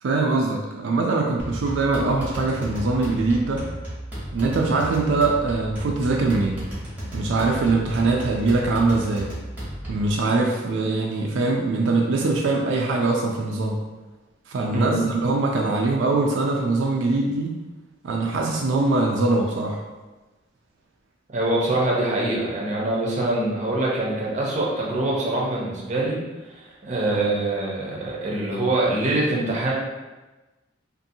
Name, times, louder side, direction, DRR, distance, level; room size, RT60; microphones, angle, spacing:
voice 1, 0.0-3.6 4.3-6.6 7.1-9.3 9.9-13.8 14.5-17.5 18.0-19.8, right 3 dB, 80° right, 0 dB, 0.3 m, -22 dB
sound 1, 1.4-10.1, right 1 dB, 10° right, 0.9 m, -34 dB
voice 2, 14.7-15.1 21.3-26.2 26.5-29.7, right 2 dB, 40° right, -3 dB, 0.6 m, -24 dB
2.7 x 2.6 x 2.6 m, 1.2 s
head